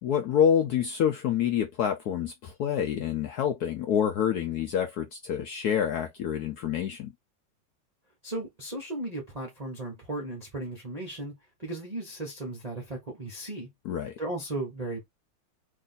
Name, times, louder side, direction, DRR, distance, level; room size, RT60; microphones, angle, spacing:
voice 1, 0.0-7.1 13.8-14.2, left 8 dB, 70° left, 0.9 m, -27 dB
voice 2, 8.2-11.3 11.6-13.7 14.2-15.0, right 2 dB, 35° right, 0.6 m, -36 dB
3.1 x 2.6 x 4.0 m
omnidirectional pair, 2.2 m